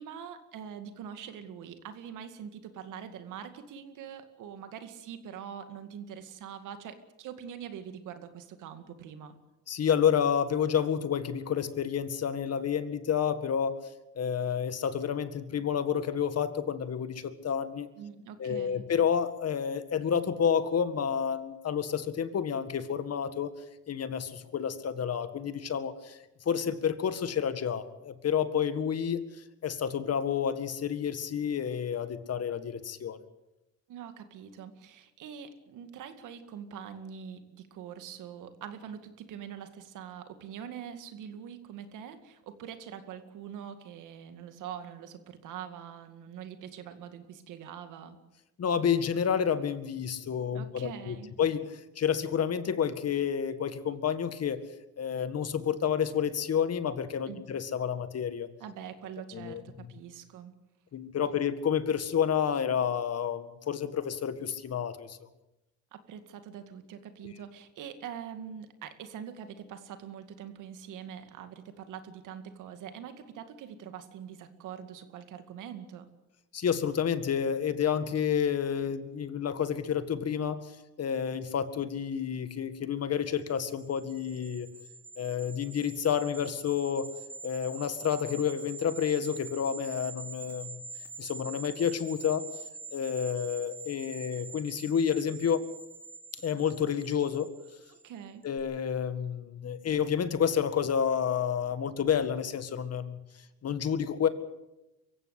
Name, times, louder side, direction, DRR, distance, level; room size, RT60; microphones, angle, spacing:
voice 1, 0.0-9.4 18.0-18.9 33.9-48.2 50.5-51.3 57.3-57.5 58.6-59.6 59.9-60.6 65.9-76.1 97.9-98.5, right 8 dB, 85° right, 9 dB, 2.2 m, -44 dB
voice 2, 9.7-13.8 14.2-17.9 18.4-23.5 23.9-26.2 26.5-33.2 48.6-51.6 52.0-54.6 55.0-58.5 59.3-59.9 60.9-65.2 76.5-80.7 81.0-84.7 85.2-87.1 87.4-90.8 91.2-92.5 92.9-95.7 96.4-97.5 98.4-103.2 103.6-104.3, left 8 dB, 55° left, 12 dB, 1.9 m, -30 dB
sound 1, 83.5-98.1 98.4-98.6, right 3 dB, 5° right, 4.6 m, -45 dB
23.5 x 15.5 x 8.5 m, 0.97 s
cardioid pair, 90°, 30 cm